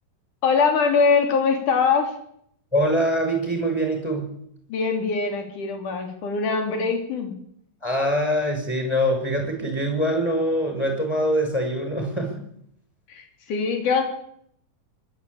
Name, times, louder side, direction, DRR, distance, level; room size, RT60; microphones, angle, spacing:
voice 1, 0.4-2.1 4.7-7.3 13.1-14.0, left 5 dB, 65° left, 5 dB, 4.5 m, -22 dB
voice 2, 2.7-4.3 7.8-12.3, equal, 5° left, 3 dB, 6.6 m, -23 dB
25.0 x 12.0 x 8.7 m, 0.70 s
omnidirectional pair, 3.9 m